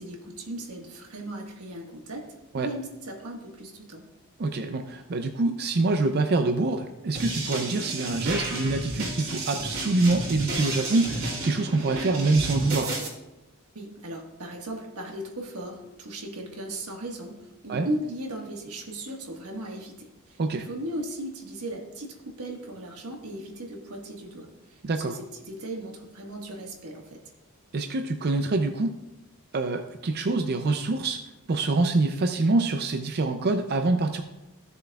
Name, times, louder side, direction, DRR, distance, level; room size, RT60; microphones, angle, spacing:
voice 1, 0.0-4.0 13.7-27.2, right 1 dB, 90° right, 2 dB, 1.5 m, -37 dB
voice 2, 4.4-12.9 17.7-17.9 20.4-20.7 24.8-25.2 27.7-28.9 29.5-31.2 31.5-34.2, right 3 dB, 45° right, 6 dB, 0.5 m, -25 dB
sound 1, 7.1-13.1, right 2 dB, 65° right, 2.8 m, -32 dB
15.0 x 6.8 x 2.3 m, 0.99 s
head